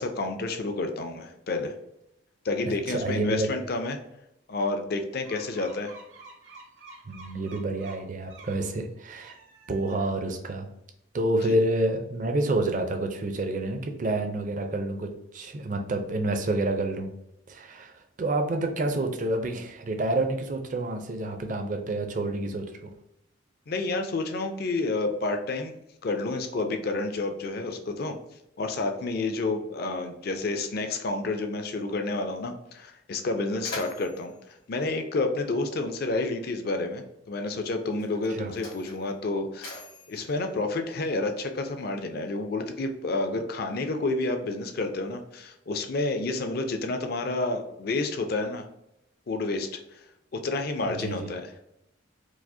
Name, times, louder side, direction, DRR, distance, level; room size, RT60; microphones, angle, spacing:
voice 1, 0.0-1.7 2.4-4.0 4.5-5.9 11.4-11.6 23.7-25.7 26.0-28.2 28.6-34.3 34.7-39.8 40.1-48.6 49.3-49.8 50.3-51.5, left 2 dB, 50° left, 6 dB, 0.4 m, -29 dB
voice 2, 2.9-3.5 7.1-9.4 9.7-10.7 11.1-17.1 17.5-17.9 18.2-22.9 38.3-38.5 50.9-51.3, right 2 dB, 40° right, 5 dB, 0.4 m, -28 dB
sound 1, 5.2-8.6 9.1-10.3, right 3 dB, 75° right, 0.8 m, -49 dB
Mechanisms, 33.2-35.8 36.8-37.0 37.8-41.4, left 2 dB, 75° left, 1.4 m, -44 dB
4.7 x 2.0 x 2.6 m, 0.84 s
head